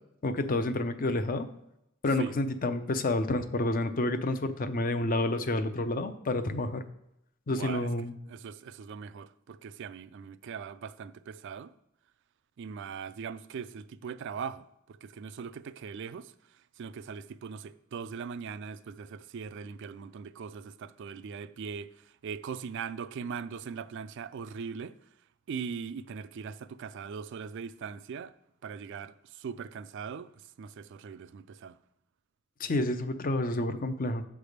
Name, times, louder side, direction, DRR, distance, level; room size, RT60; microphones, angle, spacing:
voice 1, 0.2-1.5 2.0-6.8 7.5-8.1 32.6-34.2, left 2 dB, 40° left, 0.6 m, -29 dB
voice 2, 7.5-11.7 12.6-25.0 25.5-28.3 28.6-31.8, right 6 dB, 60° right, 0.3 m, -40 dB
9.1 x 3.4 x 6.5 m
head